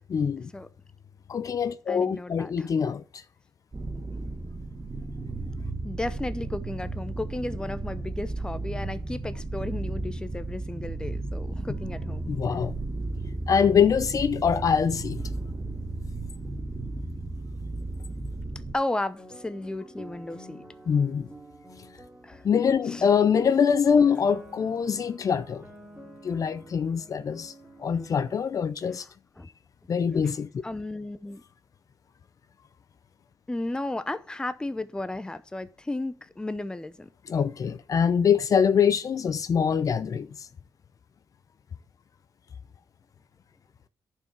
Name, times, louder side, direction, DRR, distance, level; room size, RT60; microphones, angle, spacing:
voice 1, 0.1-0.5 1.3-3.0 12.3-12.8 13.5-15.2 20.9-21.3 22.4-25.6 26.2-27.5 27.8-29.0 29.9-30.5 37.3-40.3, left 7 dB, 55° left, 0.6 m, -24 dB
voice 2, 1.9-2.7 5.8-12.3 18.7-20.6 22.2-22.4 22.9-23.1 29.4-29.5 30.6-31.4 33.5-37.1, left 2 dB, 10° left, 0.6 m, -34 dB
sound 1, 3.7-18.7, right 2 dB, 30° right, 1.3 m, -34 dB
sound 2, 19.2-28.4, equal, 10° right, 2.7 m, -48 dB
10.5 x 4.7 x 6.0 m
cardioid pair, 90°, 7 cm